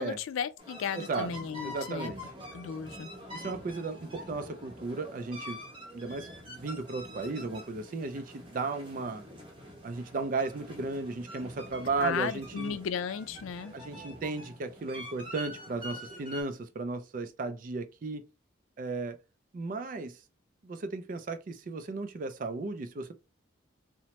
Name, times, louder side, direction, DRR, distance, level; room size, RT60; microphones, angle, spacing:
voice 1, 0.0-2.1 2.5-3.1 12.0-13.7, left 7 dB, 90° left, 0.3 m, -35 dB
sound 1, 0.6-16.4, equal, 25° right, 0.9 m, -45 dB
voice 2, 1.0-1.3 1.6-2.2 3.3-5.6 5.9-9.2 9.8-12.7 13.7-18.2 18.8-19.2 19.5-20.2 20.6-23.1, right 3 dB, 45° right, 0.3 m, -35 dB
2.8 x 2.1 x 3.0 m
head